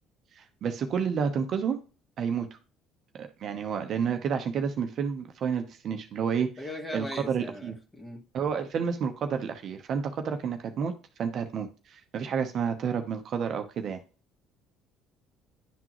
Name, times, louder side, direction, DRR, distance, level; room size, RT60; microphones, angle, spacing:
voice 1, 0.3-1.8 2.2-2.6 3.1-6.5 6.9-7.8 8.3-10.9 11.2-14.0, right 6 dB, 55° right, 0.9 m, -30 dB
voice 2, 6.6-8.2, left 1 dB, 15° left, 2.2 m, -39 dB
10.5 x 3.8 x 3.0 m
supercardioid pair, 85°, 0 cm